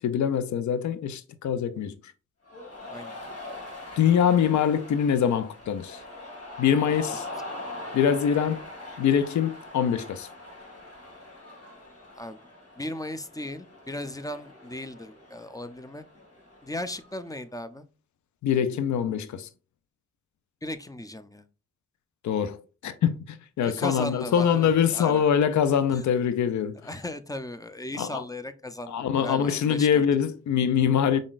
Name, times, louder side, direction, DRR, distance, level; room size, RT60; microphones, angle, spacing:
voice 1, 0.0-2.1 4.0-6.0 6.6-7.3 7.9-8.6 9.0-10.3 18.4-19.5 22.2-26.8 28.0-28.2 28.9-31.2, left 8 dB, 75° left, 0.5 m, -24 dB
Cheering, 2.5-17.3, left 2 dB, 55° left, 2.1 m, -42 dB
voice 2, 12.8-16.0 16.6-17.9 20.6-21.4 23.6-25.3 25.9-26.0 26.8-30.0, left 1 dB, 10° left, 0.5 m, -36 dB
5.0 x 3.7 x 2.4 m
cardioid pair, 40°, 29 cm